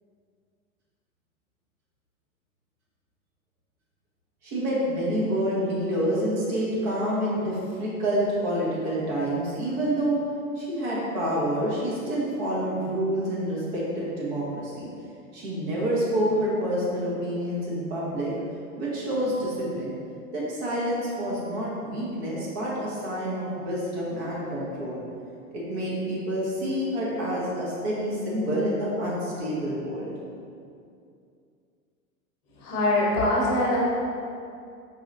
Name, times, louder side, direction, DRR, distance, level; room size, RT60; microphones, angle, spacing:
voice 1, 4.4-10.2 10.6-14.9 15.3-18.3 18.8-19.9 20.3-25.0 25.5-30.1, equal, 45° right, -6 dB, 1.3 m, -28 dB
voice 2, 32.6-33.8, left 1 dB, 35° left, -5 dB, 1.1 m, -23 dB
4.7 x 3.0 x 2.6 m, 2.4 s
figure-of-eight pair, 100°, 43 cm